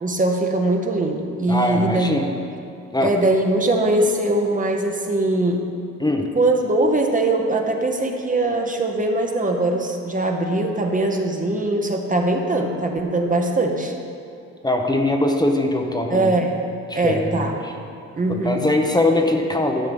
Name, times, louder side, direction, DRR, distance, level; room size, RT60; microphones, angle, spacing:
voice 1, 0.0-2.1 3.0-5.7 6.3-13.9 16.1-16.6 16.9-17.6 18.1-18.6, right 2 dB, 25° right, 2 dB, 1.0 m, -21 dB
voice 2, 1.5-2.3 2.9-3.1 6.0-6.3 14.6-16.3 16.9-17.7 18.3-19.9, left 1 dB, 15° left, 2 dB, 0.8 m, -21 dB
11.5 x 5.8 x 5.3 m, 2.6 s
cardioid pair, 90°, 30 cm